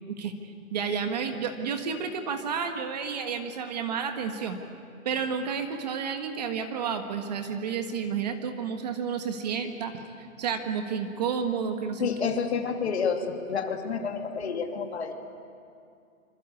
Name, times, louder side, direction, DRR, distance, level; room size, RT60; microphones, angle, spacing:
voice 1, 0.1-4.6 5.0-12.1, right 6 dB, 30° right, 6 dB, 1.6 m, -31 dB
voice 2, 12.0-15.1, left 6 dB, 50° left, 4 dB, 2.7 m, -29 dB
26.5 x 25.5 x 8.5 m, 2.4 s
hypercardioid pair, 170°, 42 cm